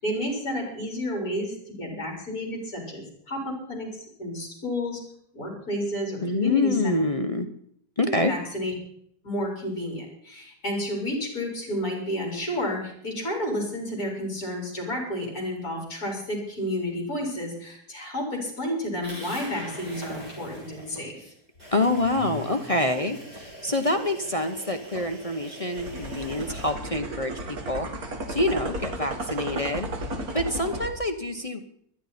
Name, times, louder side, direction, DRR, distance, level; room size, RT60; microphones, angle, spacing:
voice 1, 0.0-5.0 5.3-6.9 8.3-8.7 9.2-21.3, equal, 60° left, 0 dB, 5.3 m, -31 dB
voice 2, 6.2-7.5 8.0-8.3 21.7-27.3 27.7-27.9 28.3-29.9 30.3-31.6, left 2 dB, 30° left, 6 dB, 0.8 m, -26 dB
sound 1, 19.0-21.0 21.6-26.7, equal, 30° right, 6.7 m, -42 dB
sound 2, 25.8-30.9, right 1 dB, 65° right, 2.3 m, -34 dB
24.5 x 10.0 x 4.2 m, 0.67 s
omnidirectional pair, 1.7 m